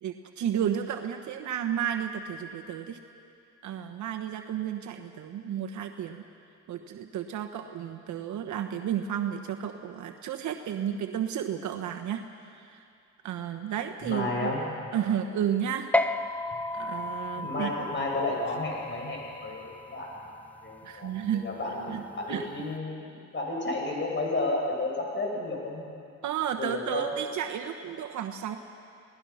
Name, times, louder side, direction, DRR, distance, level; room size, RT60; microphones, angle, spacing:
voice 1, 0.0-3.0 3.6-6.2 6.7-12.8 13.2-14.6 14.9-15.9 16.7-18.0 20.8-21.5 21.9-22.5 26.2-28.6, right 9 dB, 75° right, 5 dB, 1.2 m, -32 dB
voice 2, 14.0-14.9 17.4-25.9 26.6-27.1, left 2 dB, 40° left, -2 dB, 6.5 m, -32 dB
sound 1, 15.9-22.7, left 2 dB, 5° left, 0.7 m, -34 dB
28.5 x 18.5 x 5.8 m, 2.5 s
cardioid pair, 90°, 30 cm